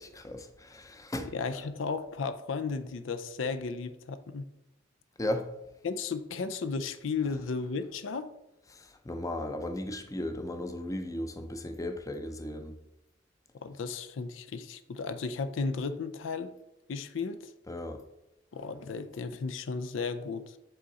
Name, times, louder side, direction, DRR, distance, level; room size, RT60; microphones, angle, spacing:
voice 1, 0.0-1.3 5.2-5.5 8.7-12.8 17.7-18.0, left 1 dB, 20° left, 7 dB, 0.5 m, -36 dB
voice 2, 1.3-4.4 5.8-8.3 13.6-16.5 16.9-17.5 18.5-20.6, left 4 dB, 85° left, 11 dB, 0.5 m, -34 dB
7.9 x 3.7 x 4.1 m, 0.91 s
head